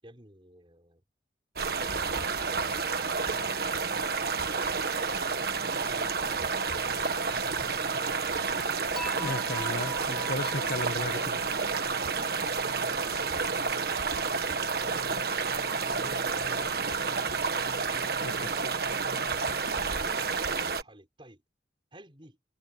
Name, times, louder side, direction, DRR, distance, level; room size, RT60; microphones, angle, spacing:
voice 1, 0.0-1.0 3.2-4.2 5.8-6.2 7.2-8.2 12.8-13.5 15.7-16.8 18.2-18.8 19.7-21.4 21.9-22.4, right 1 dB, 25° right, 6.4 m, -52 dB
sound 1, 1.6-20.8, right 4 dB, 55° right, 1.6 m, -30 dB
Dishes pots and pans / Chink clink, 9.0-12.1, equal, ahead, 1.0 m, -43 dB
voice 2, 9.2-11.4 18.2-18.5, left 2 dB, 55° left, 1.7 m, -35 dB
head